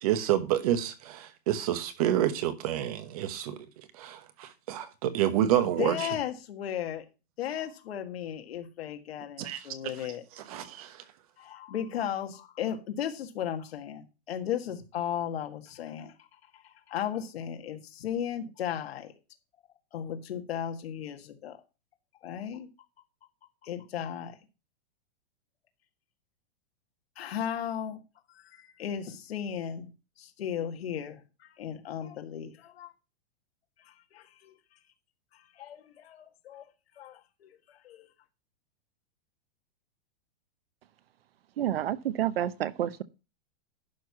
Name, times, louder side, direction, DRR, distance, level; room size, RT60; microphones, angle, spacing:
voice 1, 0.0-3.6 3.9-6.1 9.4-9.6 10.4-11.0, right 12 dB, 35° right, 1.1 m, -28 dB
voice 2, 5.4-7.0 7.4-10.2 11.4-19.1 19.9-21.6 22.2-22.7 23.6-24.4 27.2-28.0 28.3-29.9 30.2-32.9 33.9-34.6 35.3-36.7 36.9-38.1, left 9 dB, 70° left, 1.7 m, -36 dB
voice 3, 41.6-43.0, right 11 dB, 65° right, 0.9 m, -29 dB
11.5 x 4.5 x 5.8 m
supercardioid pair, 175°, 32 cm